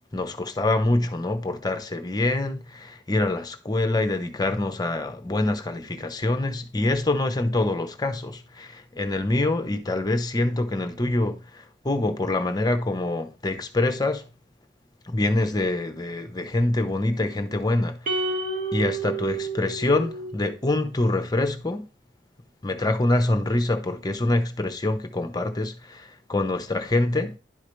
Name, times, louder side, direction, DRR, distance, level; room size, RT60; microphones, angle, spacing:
voice 1, 0.1-14.2 15.1-18.0 18.7-21.8 22.6-27.4, left 2 dB, 20° left, 0.8 m, -25 dB
sound 1, 18.1-20.5, right 3 dB, 50° right, 1.5 m, -30 dB
11.0 x 4.8 x 3.1 m
head